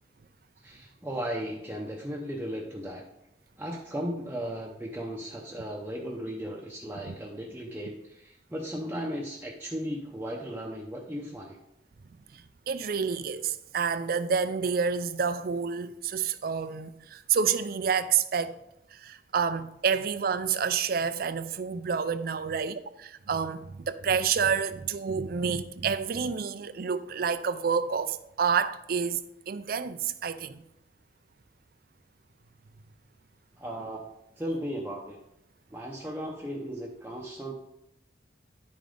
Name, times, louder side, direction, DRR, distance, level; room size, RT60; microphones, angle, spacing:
voice 1, 0.6-3.0 3.6-11.6 33.6-34.1 34.4-35.2 35.7-37.5, equal, 10° right, 0.7 m, -36 dB
voice 2, 12.3-18.6 18.9-30.6, right 6 dB, 55° right, 0.4 m, -29 dB
10.5 x 5.1 x 3.8 m
head